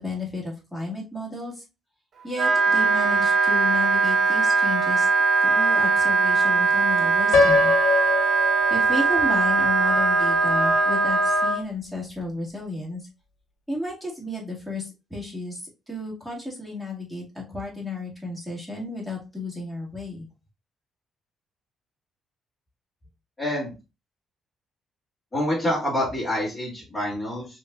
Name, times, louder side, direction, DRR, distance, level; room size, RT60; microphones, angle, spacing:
voice 1, 0.0-1.6 2.2-5.1 5.4-7.7 8.7-13.1 13.7-20.3, left 2 dB, ahead, -3 dB, 2.1 m, -33 dB
Wind instrument woodwind instrument, 2.3-11.6, right 4 dB, 55° right, 1.1 m, -20 dB
Piano, 7.3-9.3, left 4 dB, 90° left, 0.7 m, -22 dB
voice 2, 23.4-23.7 25.3-27.5, left 1 dB, 20° left, -5 dB, 2.7 m, -26 dB
5.4 x 3.2 x 2.4 m, 0.28 s
cardioid pair, 90°, 0 cm